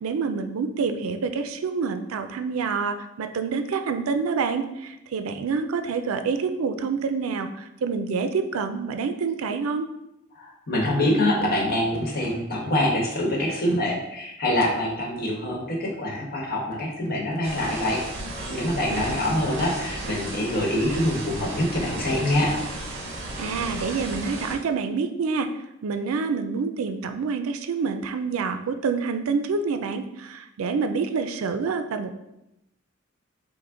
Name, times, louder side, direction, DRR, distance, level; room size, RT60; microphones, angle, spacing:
voice 1, 0.0-9.9 18.9-19.3 23.4-25.5 25.8-32.1, right 5 dB, 85° right, 8 dB, 0.4 m, -27 dB
voice 2, 10.3-18.0 18.5-22.5, left 1 dB, 50° left, -2 dB, 1.1 m, -25 dB
sound 1, 17.4-24.6, right 2 dB, 65° right, 1.1 m, -34 dB
5.8 x 2.1 x 3.7 m, 0.87 s
head